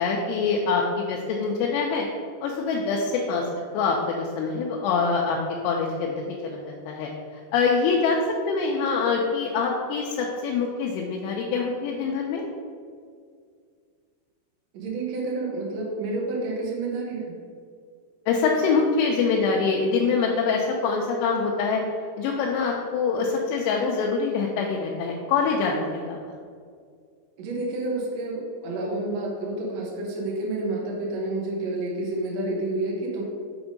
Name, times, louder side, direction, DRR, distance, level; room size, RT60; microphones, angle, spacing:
voice 1, 0.0-2.1 2.4-3.5 3.7-5.4 5.6-7.1 7.5-8.2 8.5-12.4 18.3-21.8 22.2-26.2, left 5 dB, 85° left, -1 dB, 2.8 m, -24 dB
voice 2, 14.7-17.3 27.4-33.2, right 2 dB, 85° right, -2 dB, 1.5 m, -29 dB
6.9 x 3.5 x 5.2 m, 2.1 s
omnidirectional pair, 4.8 m